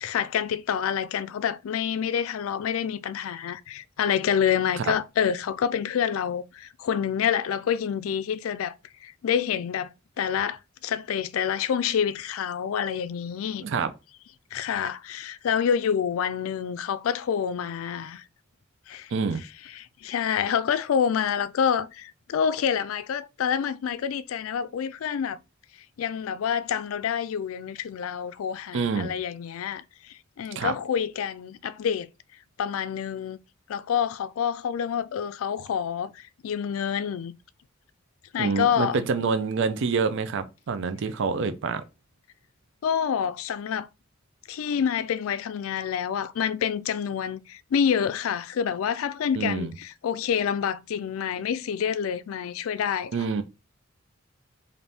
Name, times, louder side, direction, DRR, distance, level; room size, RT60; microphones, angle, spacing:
voice 1, 0.0-8.7 9.0-13.6 14.5-18.2 18.9-19.1 19.8-25.4 26.0-32.1 32.6-33.4 33.7-37.3 38.3-39.0 42.8-43.9 44.5-53.3, left 8 dB, 80° left, 0.3 m, -27 dB
voice 2, 19.1-19.4 28.7-29.1 30.6-30.7 38.4-41.8 49.3-49.7 53.1-53.4, right 5 dB, 65° right, 0.5 m, -27 dB
4.1 x 2.6 x 3.4 m
head